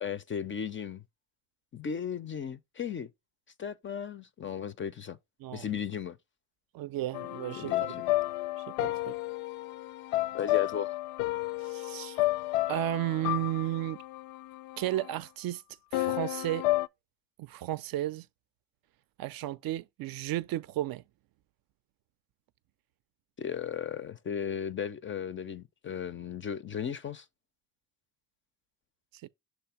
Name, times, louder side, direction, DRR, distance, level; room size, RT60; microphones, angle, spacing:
voice 1, 0.0-1.0 1.7-3.1 3.6-5.2 5.5-6.2 7.6-8.1 10.3-11.0 23.4-27.3, left 8 dB, 25° left, 0.4 m, -35 dB
voice 2, 6.7-8.0 8.7-9.1 11.6-12.2 12.7-14.0 14.8-15.6 15.9-16.7 17.4-18.3 19.2-21.0 29.2-29.3, right 14 dB, 50° right, 0.5 m, -33 dB
sound 1, 7.1-15.1 15.9-16.9, left 18 dB, 75° left, 0.5 m, -32 dB
6.9 x 2.7 x 5.7 m
supercardioid pair, 95°, 47 cm